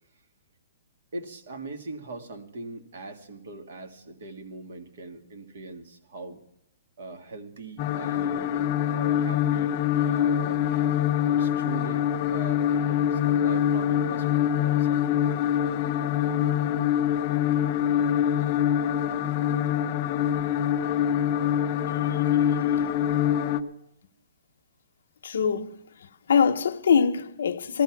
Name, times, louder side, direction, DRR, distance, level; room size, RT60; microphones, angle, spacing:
voice 1, 1.1-6.4 7.0-11.0 11.3-15.3, right 3 dB, 55° right, 1.8 m, -41 dB
sound 1, 7.8-23.6, left 10 dB, 25° left, 0.6 m, -24 dB
voice 2, 25.2-25.8 26.3-27.8, left 6 dB, 60° left, 0.9 m, -23 dB
16.0 x 13.5 x 5.9 m
hypercardioid pair, 175°, 0 cm